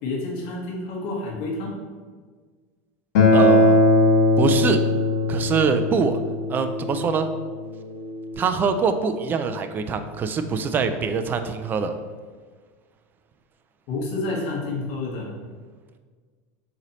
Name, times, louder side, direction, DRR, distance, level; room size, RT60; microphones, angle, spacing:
voice 1, 0.0-1.7 13.9-15.3, left 2 dB, 55° left, -2 dB, 1.3 m, -29 dB
Acoustic guitar, 3.1-8.3, left 2 dB, 85° left, 0.9 m, -20 dB
voice 2, 3.3-3.8 4.4-4.8 5.3-6.2 6.5-7.3 8.4-12.0, right 5 dB, 25° right, 8 dB, 0.3 m, -24 dB
4.1 x 3.1 x 4.0 m, 1.5 s
supercardioid pair, 145°, 8 cm